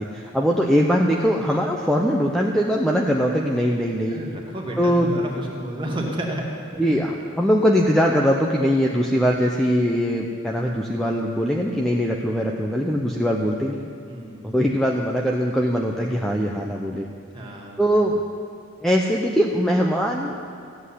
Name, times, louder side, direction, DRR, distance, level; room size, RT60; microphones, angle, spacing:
voice 1, 0.0-4.2 4.8-5.2 6.8-13.9 14.4-17.1 17.8-18.2 18.8-20.4, equal, ahead, -1 dB, 0.7 m, -21 dB
voice 2, 4.1-6.5 6.7-6.9 14.1-14.5 17.3-17.8, right 1 dB, 20° right, -1 dB, 2.1 m, -31 dB
15.0 x 8.1 x 9.9 m, 2.4 s
head